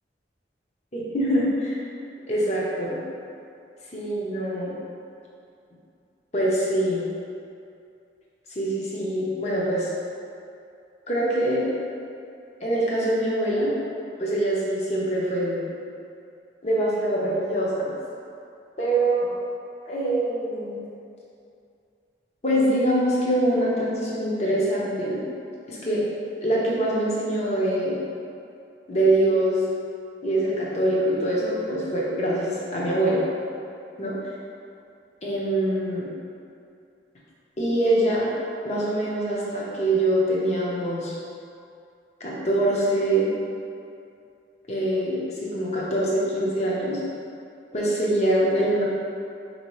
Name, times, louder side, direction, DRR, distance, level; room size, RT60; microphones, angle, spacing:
voice 1, 0.9-1.8 2.3-3.0 3.9-4.7 6.3-7.1 8.5-9.9 11.1-11.7 12.6-13.7 14.2-15.6 16.6-17.9 18.8-19.3 19.9-20.8 22.4-25.2 25.7-26.0 26.4-28.0 28.9-29.6 30.2-33.2 34.0-34.2 35.2-36.1 37.6-38.3 38.6-41.1 42.2-43.3 44.7-47.0 47.7-48.8, right 1 dB, 40° left, -5 dB, 0.7 m, -24 dB
4.4 x 2.7 x 3.1 m, 2.5 s
head